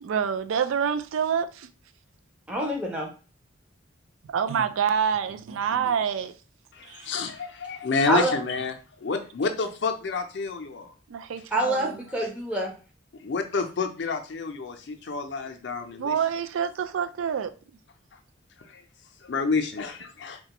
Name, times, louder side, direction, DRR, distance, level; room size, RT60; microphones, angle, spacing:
voice 1, 0.0-1.7 4.3-6.3 6.9-7.2 11.1-12.1 16.0-17.5, right 7 dB, 90° right, 0.4 m, -27 dB
voice 2, 2.5-3.1 8.1-8.3 11.5-12.7, right 1 dB, 5° right, 0.4 m, -26 dB
voice 3, 6.8-8.7 9.0-10.9 13.2-16.2 18.7-18.8 19.2-20.4, left 4 dB, 65° left, 0.5 m, -29 dB
3.9 x 2.2 x 2.9 m
head